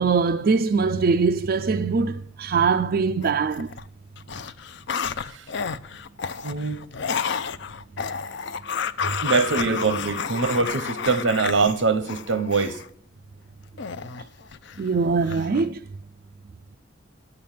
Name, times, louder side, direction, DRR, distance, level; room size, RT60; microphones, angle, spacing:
voice 1, 0.0-3.7 14.8-15.8, right 4 dB, 50° right, 0.4 m, -22 dB
sound 1, 3.2-3.9 4.2-12.9 13.8-14.9 15.2-15.7, left 6 dB, 65° left, 0.5 m, -31 dB
voice 2, 6.4-6.8 9.2-12.8, right 4 dB, 75° right, 0.9 m, -23 dB
9.4 x 8.7 x 7.4 m
head